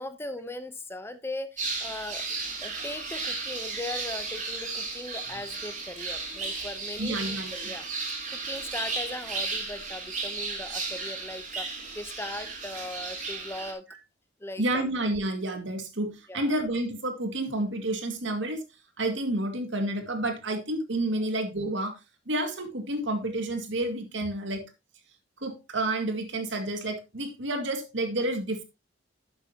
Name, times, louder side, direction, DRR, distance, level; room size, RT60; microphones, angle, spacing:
voice 1, 0.0-2.2 2.6-13.9 14.4-14.9 16.3-16.5, left 1 dB, 15° left, 10 dB, 0.8 m, -39 dB
sound 1, 1.6-13.7, right 3 dB, 40° right, 3.8 m, -34 dB
voice 2, 7.0-7.5 14.6-18.6 19.0-22.0 22.3-24.7 25.4-28.6, right 1 dB, 75° right, 6 dB, 2.2 m, -30 dB
11.5 x 8.0 x 2.9 m, 0.24 s
head